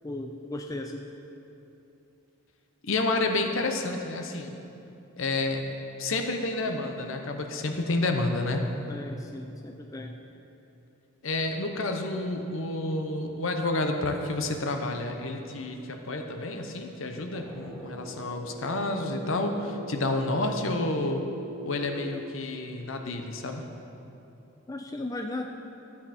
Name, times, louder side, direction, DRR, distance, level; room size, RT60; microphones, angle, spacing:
voice 1, 0.0-1.0 8.9-10.2 24.7-25.5, left 2 dB, 15° left, 3 dB, 0.3 m, -36 dB
voice 2, 2.8-4.5 5.2-5.6 6.0-8.6 11.2-21.2 21.6-23.6, left 2 dB, 65° left, 5 dB, 0.9 m, -29 dB
sound 1, 17.3-22.1, equal, 5° right, 1.1 m, -41 dB
13.0 x 8.6 x 4.3 m, 2.9 s
head